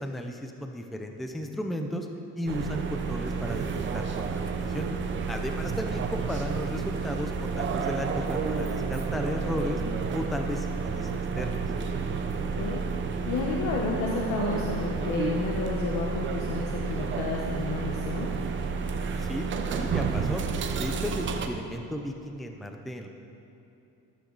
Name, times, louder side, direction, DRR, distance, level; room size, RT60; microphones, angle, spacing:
voice 1, 0.0-2.1 2.4-3.7 3.9-4.9 5.3-9.8 10.1-11.1 11.4-11.6 19.2-19.5 19.8-20.5 20.8-23.1, left 1 dB, ahead, 4 dB, 0.5 m, -34 dB
sound 1, 2.5-21.5, right 5 dB, 40° right, 0.8 m, -30 dB
voice 2, 12.6-18.3, left 4 dB, 60° left, -2 dB, 1.2 m, -31 dB
13.0 x 13.0 x 4.0 m, 2.8 s
cardioid pair, 165°, 32 cm